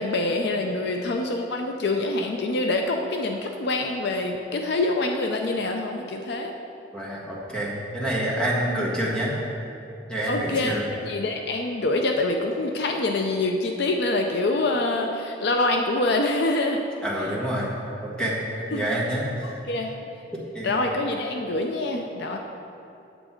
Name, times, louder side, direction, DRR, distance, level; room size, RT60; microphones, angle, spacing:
voice 1, 0.0-6.5 10.3-10.7 11.1-16.8 18.7-18.8 19.4-19.9 20.6-22.4, left 2 dB, 60° left, 3 dB, 0.5 m, -25 dB
voice 2, 6.9-9.4 10.1-10.8 17.0-17.7 18.0-18.4 18.7-19.2 20.3-20.8, right 1 dB, 5° left, -6 dB, 1.5 m, -27 dB
7.9 x 7.6 x 4.4 m, 2.7 s
head